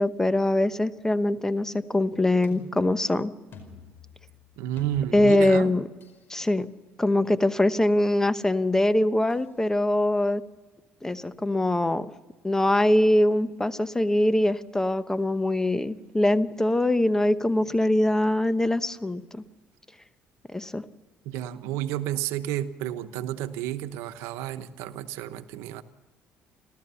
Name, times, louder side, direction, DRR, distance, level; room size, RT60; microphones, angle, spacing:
voice 1, 0.0-3.3 5.1-5.9 6.3-6.7 7.0-10.4 11.0-12.1 12.4-19.4 20.5-20.8, left 1 dB, 10° left, 13 dB, 0.9 m, -23 dB
sound 1, 2.4-6.3 9.3-9.5, left 4 dB, 55° left, 5.0 m, -48 dB
voice 2, 4.6-5.7 21.3-25.8, right 12 dB, 90° right, 10 dB, 1.0 m, -31 dB
29.5 x 13.0 x 7.0 m, 1.3 s
cardioid pair, 90°, 4 cm